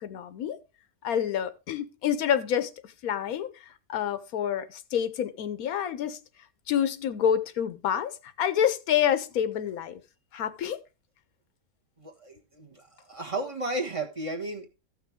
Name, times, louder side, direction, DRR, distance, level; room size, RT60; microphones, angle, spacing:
voice 1, 0.0-0.6 1.0-2.7 3.0-6.2 6.7-10.0 10.3-10.8, left 9 dB, 80° left, 1.2 m, -28 dB
voice 2, 12.0-14.7, right 2 dB, 25° right, 1.3 m, -34 dB
14.5 x 6.0 x 3.5 m
omnidirectional pair, 1.5 m